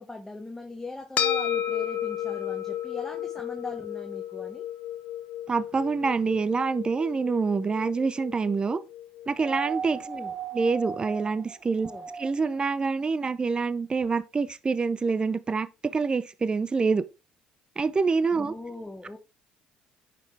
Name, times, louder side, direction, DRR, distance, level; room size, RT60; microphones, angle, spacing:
voice 1, 0.0-4.7 10.1-10.3 11.8-12.1 18.3-19.2, left 2 dB, 10° left, 1.5 m, -40 dB
sound 1, 1.2-9.8, left 10 dB, 60° left, 1.0 m, -33 dB
voice 2, 5.5-8.8 9.3-10.1 10.5-17.0 17.8-18.5, right 4 dB, 30° right, 0.6 m, -26 dB
sound 2, 9.3-12.6 14.0-14.1, right 7 dB, 45° right, 1.3 m, -37 dB
9.7 x 6.0 x 3.4 m
hypercardioid pair, 60°, 3 cm